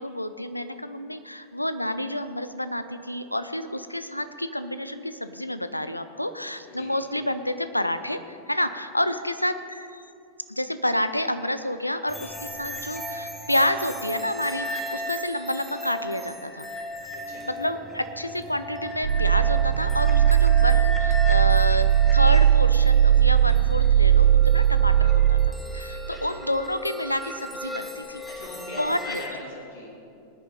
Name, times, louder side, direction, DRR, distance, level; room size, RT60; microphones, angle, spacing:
voice 1, 0.0-10.0 10.5-16.7 17.4-28.2 28.6-29.2, left 1 dB, 85° left, 11 dB, 0.6 m, -29 dB
sound 1, 12.1-29.3, equal, 5° left, 1.4 m, -36 dB
voice 2, 17.1-17.4 26.1-26.2 28.3-29.9, left 2 dB, 65° left, -4 dB, 3.5 m, -40 dB
sound 2, 19.0-25.5, right 10 dB, 65° right, 0.4 m, -18 dB
20.0 x 9.8 x 4.2 m, 2.6 s
figure-of-eight pair, 90°, 0 cm